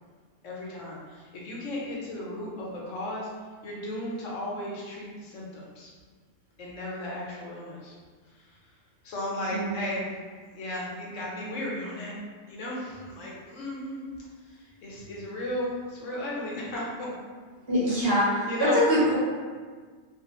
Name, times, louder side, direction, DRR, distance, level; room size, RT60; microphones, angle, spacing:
voice 1, 0.4-3.3 3.6-5.9 6.6-8.0 8.3-8.6 9.0-10.1 10.5-12.1 12.5-14.0 14.4-17.1 17.9-18.1 18.5-18.8, left 1 dB, 80° left, -4 dB, 1.1 m, -35 dB
voice 2, 9.5-9.8 17.7-19.2, equal, 55° right, -8 dB, 1.0 m, -24 dB
2.4 x 2.3 x 2.8 m, 1.6 s
omnidirectional pair, 1.3 m